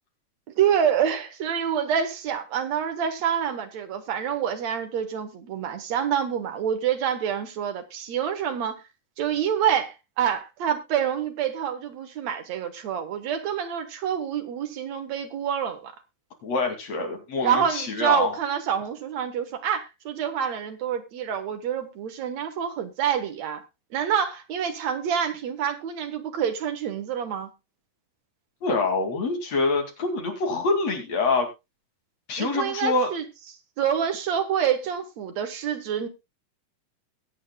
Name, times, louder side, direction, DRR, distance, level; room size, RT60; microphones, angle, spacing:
voice 1, 0.6-8.8 9.2-15.9 17.4-23.6 23.9-27.5 32.4-33.3 33.8-36.1, right 8 dB, 60° right, 2.2 m, -27 dB
voice 2, 16.4-18.4 28.6-31.5 32.3-33.1, left 3 dB, 50° left, 3.3 m, -25 dB
21.0 x 8.6 x 2.2 m
omnidirectional pair, 4.0 m